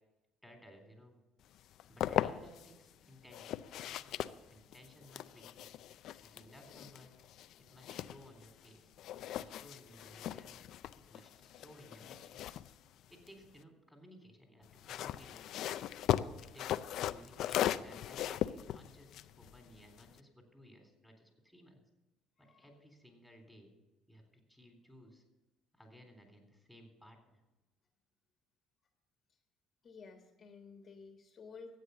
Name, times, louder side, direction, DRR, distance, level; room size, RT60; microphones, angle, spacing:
voice 1, 0.4-1.2 1.9-5.7 6.2-7.2 7.7-8.9 9.4-10.5 11.1-12.6 13.1-16.0 16.4-21.8 22.4-23.7 24.1-24.2 24.5-25.2 25.8-27.4, equal, ahead, 3 dB, 3.6 m, -58 dB
sound 1, 1.6-2.7 3.3-8.7 9.0-13.6 14.6-20.2, left 12 dB, 65° left, 0.5 m, -39 dB
voice 2, 22.4-22.7 29.8-31.8, left 4 dB, 40° left, 4 dB, 1.6 m, -53 dB
13.0 x 8.9 x 7.0 m, 1.1 s
supercardioid pair, 95°, 0 cm